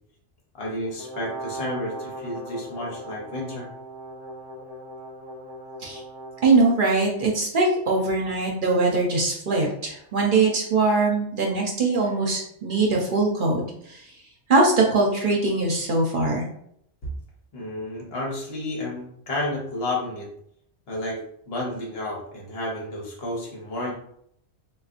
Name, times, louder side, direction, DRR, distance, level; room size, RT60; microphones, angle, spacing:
voice 1, 0.5-3.7 12.7-12.8 17.0-17.1 17.5-20.3 20.9-21.2 21.5-23.9, left 1 dB, 60° left, -2 dB, 1.1 m, -31 dB
Brass instrument, 1.0-6.8, right 1 dB, 35° left, 0.9 m, -38 dB
voice 2, 6.4-13.6 13.9-14.0 14.5-16.5, right 3 dB, 55° right, -1 dB, 0.8 m, -22 dB
3.9 x 2.3 x 2.5 m, 0.70 s
omnidirectional pair, 1.2 m